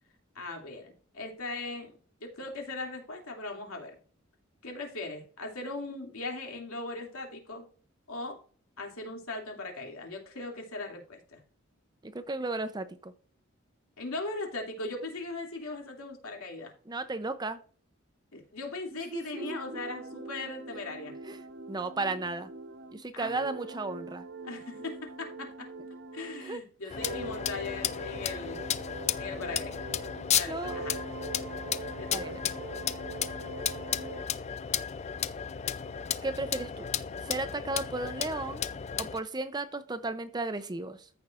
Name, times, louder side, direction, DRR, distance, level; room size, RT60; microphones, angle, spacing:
voice 1, 0.3-1.9 2.2-4.0 4.6-7.6 8.1-8.4 8.8-11.4 14.0-16.7 18.3-21.2 23.1-23.4 24.4-25.7 26.1-28.6 29.2-29.9 30.3-30.9 32.0-32.3, left 2 dB, 85° left, 2 dB, 2.6 m, -39 dB
voice 2, 12.0-13.1 16.9-17.6 18.9-19.6 20.7-20.8 21.2-22.5 22.9-24.2 26.4-27.0 30.5-30.8 32.1-32.4 36.2-36.9 37.2-38.6 39.0-41.1, right 2 dB, 20° right, 12 dB, 0.5 m, -35 dB
sound 1, 19.4-26.6 27.0-30.3 30.6-34.3, right 2 dB, 55° right, 0.7 m, -43 dB
sound 2, 26.9-39.2, left 9 dB, 30° left, 0.4 m, -34 dB
14.5 x 6.0 x 2.5 m, 0.43 s
head